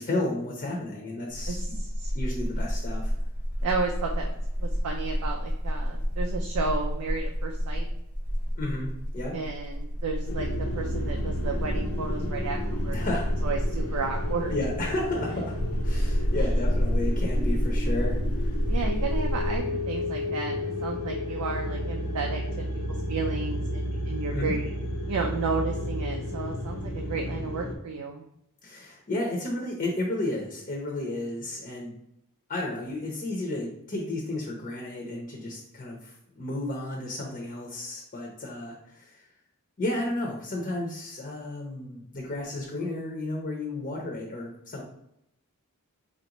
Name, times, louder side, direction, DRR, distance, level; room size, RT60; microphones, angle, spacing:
voice 1, 0.0-1.8 2.1-3.1 8.6-8.9 9.1-9.3 12.9-13.3 14.5-18.6 24.3-24.6 28.6-31.9 32.5-39.3 39.8-44.8, left 2 dB, 35° left, -2 dB, 0.7 m, -32 dB
sound 1, 1.3-19.6, equal, 35° right, 0.8 m, -29 dB
voice 2, 1.5-2.1 3.6-7.9 9.3-10.5 10.7-13.0 13.4-14.5 16.4-16.5 18.7-22.6 23.1-24.7 25.1-28.2, right 4 dB, 80° right, 2 dB, 0.5 m, -33 dB
sound 2, 10.3-27.8, left 1 dB, 75° left, 0.7 m, -32 dB
4.2 x 2.5 x 2.9 m, 0.79 s
head